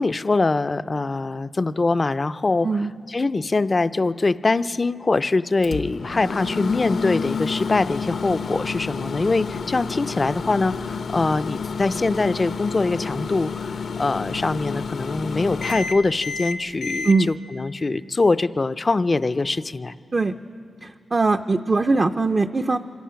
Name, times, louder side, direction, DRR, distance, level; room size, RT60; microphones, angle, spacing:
voice 1, 0.0-13.7 14.0-19.9, left 3 dB, 30° left, 14 dB, 0.4 m, -23 dB
Microwave oven, 5.6-17.2, left 5 dB, 70° left, 0.7 m, -30 dB
voice 2, 20.8-22.8, right 3 dB, 30° right, 6 dB, 0.4 m, -21 dB
26.0 x 17.5 x 5.8 m, 2.6 s
wide cardioid pair, 130°, 0 cm